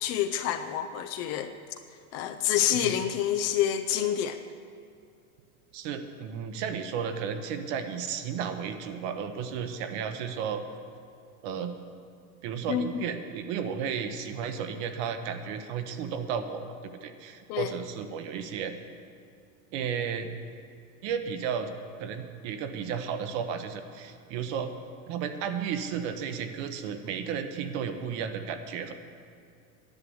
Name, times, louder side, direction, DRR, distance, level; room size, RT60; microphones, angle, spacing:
voice 1, 0.0-1.5 2.1-4.4 12.7-12.9 17.5-17.7, left 10 dB, 35° left, 7 dB, 0.5 m, -27 dB
voice 2, 5.7-10.6 11.4-11.7 12.4-18.7 19.7-20.3 21.0-21.7 22.0-24.7 25.1-28.9, right 7 dB, 50° right, 8 dB, 1.1 m, -33 dB
11.0 x 9.5 x 7.0 m, 2.4 s
supercardioid pair, 140°, 45 cm